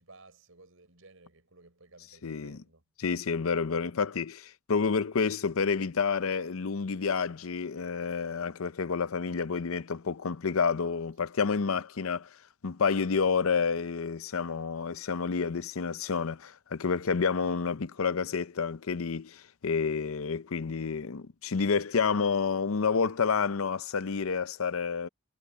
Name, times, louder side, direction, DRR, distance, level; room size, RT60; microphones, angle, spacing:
voice 1, 0.0-2.8, right 3 dB, 70° right, 5.0 m, -56 dB
voice 2, 2.2-2.6 3.0-12.3 12.6-25.1, left 5 dB, 75° left, 0.6 m, -29 dB
head